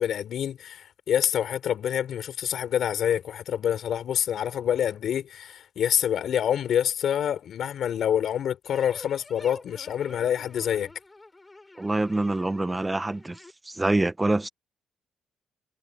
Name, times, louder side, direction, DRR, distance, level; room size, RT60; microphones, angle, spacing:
voice 1, 0.0-10.9, left 9 dB, 65° left, 4.8 m, -27 dB
sound 1, 8.6-13.5, left 2 dB, 15° left, 7.5 m, -47 dB
voice 2, 11.8-13.4 13.7-14.5, right 2 dB, 15° right, 1.1 m, -25 dB
cardioid pair, 90°, 0 cm